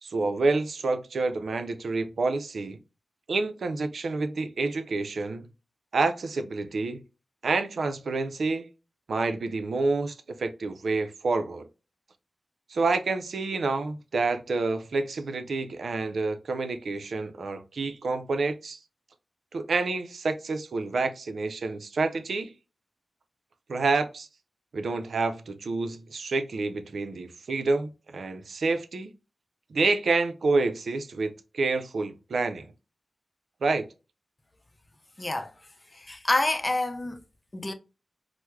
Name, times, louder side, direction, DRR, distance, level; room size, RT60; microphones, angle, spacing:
voice 1, 0.0-2.8 3.3-5.5 5.9-7.0 7.4-8.7 9.1-11.7 12.7-18.8 19.5-22.5 23.7-24.3 24.7-29.1 29.7-32.7 33.6-33.8, right 3 dB, 85° right, 0.4 m, -28 dB
voice 2, 35.2-35.5 35.9-37.2 37.5-37.7, left 2 dB, 35° left, 0.5 m, -27 dB
4.5 x 2.0 x 2.2 m
cardioid pair, 55°, 0 cm